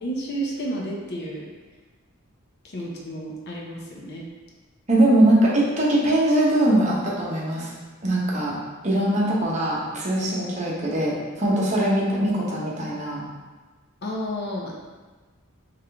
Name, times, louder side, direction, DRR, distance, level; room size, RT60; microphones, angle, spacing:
voice 1, 0.0-1.5 2.6-4.2 14.0-14.8, right 1 dB, 50° left, -2 dB, 0.7 m, -31 dB
voice 2, 4.9-7.7 8.0-8.6 8.8-13.2, right 1 dB, 35° right, -5 dB, 0.9 m, -21 dB
3.6 x 3.3 x 3.4 m, 1.3 s
head